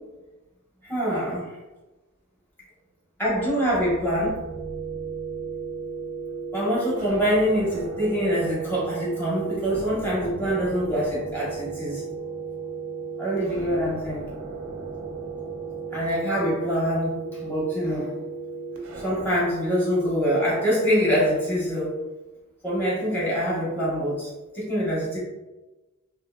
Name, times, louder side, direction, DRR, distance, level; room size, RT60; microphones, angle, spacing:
voice 1, 0.9-1.5 3.2-4.4 6.5-12.0 13.2-14.2 15.9-17.1 17.4-18.1 19.0-22.0 22.6-24.3 24.5-25.2, equal, 10° left, -8 dB, 1.0 m, -24 dB
sound 1, 3.7-19.4, right 5 dB, 75° right, 0.5 m, -35 dB
2.7 x 2.7 x 2.2 m, 1.1 s
head